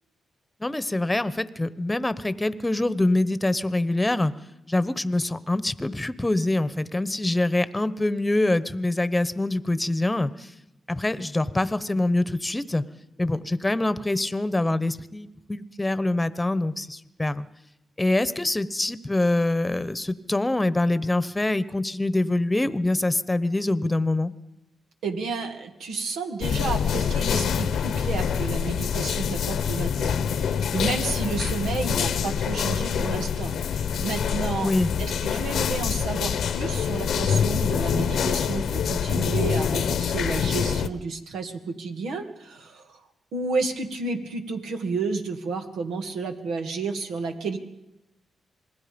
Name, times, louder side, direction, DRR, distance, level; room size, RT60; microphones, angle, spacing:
voice 1, 0.6-4.3 4.7-10.5 10.9-12.8 13.2-17.5 18.0-24.3 34.6-34.9, left 2 dB, 15° left, 15 dB, 1.1 m, -25 dB
voice 2, 25.0-34.7 35.0-43.0 43.3-47.6, right 4 dB, 90° right, 5 dB, 2.2 m, -31 dB
sound 1, 26.4-40.9, left 7 dB, 80° left, 1.0 m, -25 dB
26.5 x 20.0 x 5.3 m, 0.94 s
cardioid pair, 70°, 0 cm